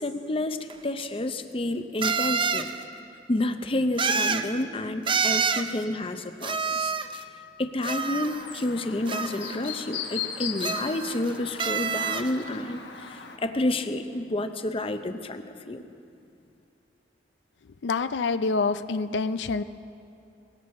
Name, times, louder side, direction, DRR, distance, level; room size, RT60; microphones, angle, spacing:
voice 1, 0.0-2.7 3.3-6.9 7.6-15.8, left 1 dB, 30° left, 9 dB, 0.7 m, -30 dB
sound 1, 0.7-0.8 2.0-2.7 4.0-4.5 5.1-5.7 6.4-7.2 7.8-8.6 9.1-9.7 10.6-11.3 11.6-12.3, right 5 dB, 30° right, 0.5 m, -27 dB
Chirp tweet, 7.9-13.4, left 7 dB, 70° left, 1.1 m, -38 dB
voice 2, 17.8-19.6, left 4 dB, 90° left, 12 dB, 0.5 m, -26 dB
19.5 x 16.5 x 4.3 m, 2.8 s
head